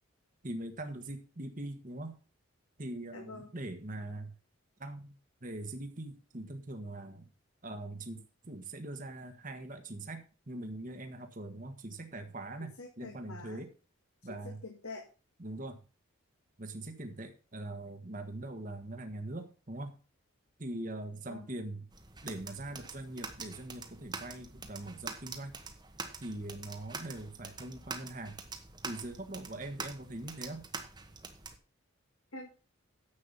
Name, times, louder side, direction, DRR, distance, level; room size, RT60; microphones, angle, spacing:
voice 1, 0.4-2.2 2.8-4.3 4.8-7.3 7.6-13.7 14.2-14.6 15.4-15.8 16.6-20.0 20.6-21.9 22.2-25.6 26.2-28.4 28.8-30.7, right 1 dB, 40° right, 6 dB, 1.3 m, -42 dB
voice 2, 3.1-3.5 12.8-13.6 14.3-15.1 21.3-21.5 32.3-32.5, left 2 dB, 80° left, 1 dB, 2.1 m, -46 dB
sound 1, 21.9-31.6, right 4 dB, 20° right, 1.2 m, -45 dB
10.0 x 7.8 x 5.5 m, 0.34 s
head